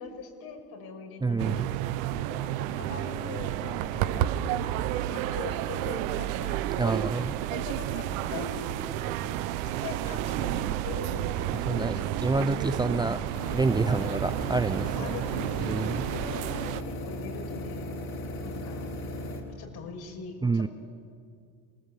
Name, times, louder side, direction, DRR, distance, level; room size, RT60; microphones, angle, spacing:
voice 1, 0.0-1.7 2.3-4.3 5.1-6.9 7.5-9.3 9.8-12.6 12.9-13.0 13.8-14.1 14.9-17.9 18.4-18.9 19.6-20.7, left 4 dB, 65° left, 2 dB, 6.2 m, -42 dB
voice 2, 1.2-1.7 6.8-7.4 11.7-11.9 12.2-13.2 13.5-15.1 15.7-16.0 20.4-20.7, right 3 dB, 10° right, 11 dB, 0.6 m, -28 dB
sound 1, 1.4-16.8, right 12 dB, 85° right, 1.2 m, -31 dB
sound 2, 13.3-19.4, left 1 dB, 40° left, 4.6 m, -37 dB
27.5 x 20.0 x 8.3 m, 2.2 s
supercardioid pair, 110°, 40 cm